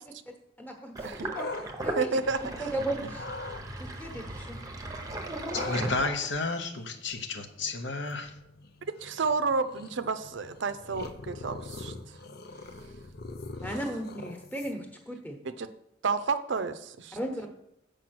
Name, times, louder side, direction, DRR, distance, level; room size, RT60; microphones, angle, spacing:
voice 1, 0.6-0.9 1.2-1.4 1.8-2.1 2.6-3.2 3.8-4.6 13.6-15.4 17.1-17.5, right 1 dB, 10° left, 2 dB, 1.1 m, -35 dB
Sink (filling or washing), 0.9-6.5, right 1 dB, 20° right, 0.8 m, -37 dB
sound 1, 1.0-2.7 3.1-3.6 5.5-15.0, left 3 dB, 55° left, 0.6 m, -43 dB
voice 2, 2.0-2.7 9.0-12.2 13.7-13.8 15.4-15.7 16.0-17.2, right 4 dB, 70° right, 11 dB, 0.5 m, -31 dB
voice 3, 5.5-8.3, left 3 dB, 70° left, 6 dB, 0.9 m, -32 dB
7.6 x 5.0 x 5.9 m, 0.80 s
head